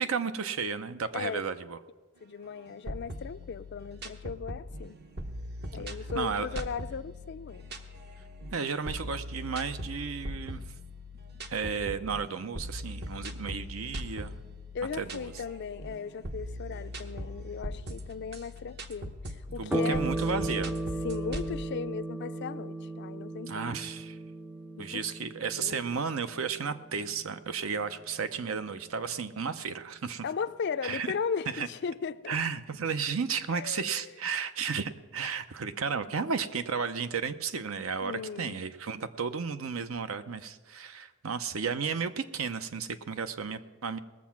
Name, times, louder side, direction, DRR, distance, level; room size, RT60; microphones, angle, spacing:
voice 1, 0.0-1.8 5.7-6.5 8.5-10.6 11.5-14.4 15.0-15.3 19.6-20.7 23.5-24.2 24.8-30.2 30.8-31.1 31.5-31.7 32.3-44.0, right 5 dB, 75° right, 0.7 m, -33 dB
voice 2, 1.1-1.5 2.2-5.0 5.7-7.7 14.7-20.1 21.0-23.8 24.8-25.1 25.6-25.8 30.2-32.4 33.5-34.1 38.0-38.6, left 6 dB, 55° left, 0.4 m, -37 dB
sound 1, 2.7-21.5, equal, 50° right, 0.9 m, -40 dB
sound 2, 19.7-28.6, right 1 dB, 10° right, 0.4 m, -36 dB
19.0 x 7.3 x 5.9 m
head